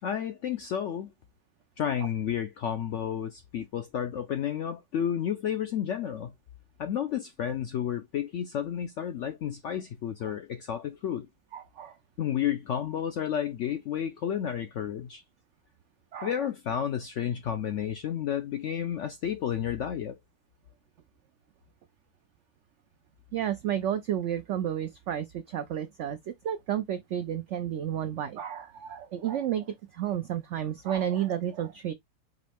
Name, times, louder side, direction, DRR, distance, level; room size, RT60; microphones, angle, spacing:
voice 1, 0.0-1.1 1.8-6.3 6.8-11.3 12.2-15.2 16.2-20.2, left 9 dB, 75° left, 0.7 m, -31 dB
voice 2, 11.5-12.0 16.1-16.5 23.3-31.9, right 10 dB, 85° right, 0.6 m, -32 dB
5.0 x 3.0 x 3.4 m
omnidirectional pair, 1.8 m